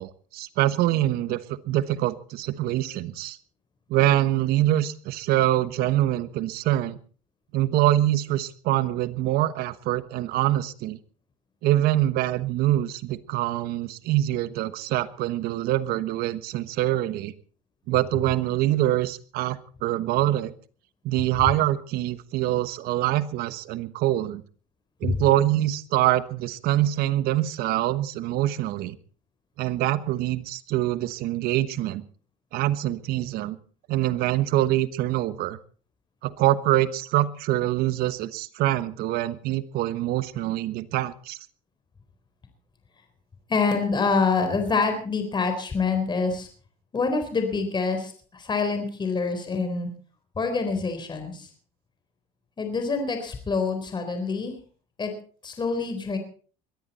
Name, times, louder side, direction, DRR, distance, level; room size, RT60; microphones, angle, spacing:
voice 1, 0.0-3.4 3.9-7.0 7.5-11.0 11.6-17.3 17.9-20.5 21.0-24.4 25.0-29.0 29.6-32.0 32.5-33.6 33.9-35.6 36.2-41.4, right 14 dB, 65° right, 15 dB, 1.2 m, -24 dB
voice 2, 43.5-46.5 46.9-49.9 50.4-51.5 52.6-54.6 55.0-55.1 55.4-56.2, left 4 dB, 25° left, 6 dB, 4.0 m, -26 dB
22.0 x 13.5 x 4.2 m, 0.42 s
supercardioid pair, 95°, 17 cm